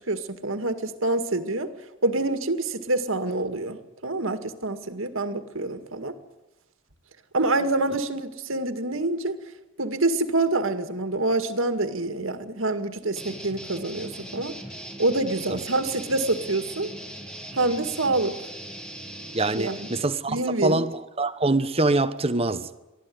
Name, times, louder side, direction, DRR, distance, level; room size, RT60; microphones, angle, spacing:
voice 1, 0.0-1.7 2.0-6.1 7.3-9.4 9.8-14.5 15.0-16.9 17.5-18.4 19.5-19.9 20.3-20.9, right 2 dB, 75° right, 2.1 m, -26 dB
sound 1, 13.2-20.0, right 1 dB, 5° left, 2.4 m, -39 dB
voice 2, 19.3-20.4 20.6-20.9 21.2-22.8, right 2 dB, 30° right, 1.1 m, -24 dB
23.5 x 15.0 x 9.5 m
head